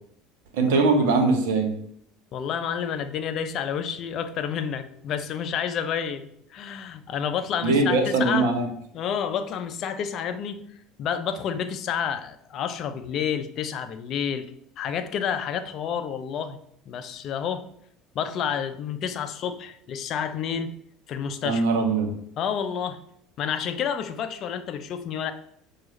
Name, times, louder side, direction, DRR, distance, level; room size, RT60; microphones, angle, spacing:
voice 1, 0.5-1.7 7.6-8.7 21.4-22.1, right 3 dB, 70° right, 4 dB, 0.8 m, -21 dB
voice 2, 2.3-8.5 8.9-10.6 11.0-14.5 14.8-16.6 16.9-17.7 18.1-20.7 21.1-21.6 22.4-23.0 23.4-25.3, left 7 dB, 50° left, 10 dB, 0.4 m, -29 dB
6.0 x 2.4 x 3.1 m, 0.68 s
hypercardioid pair, 70°, 0 cm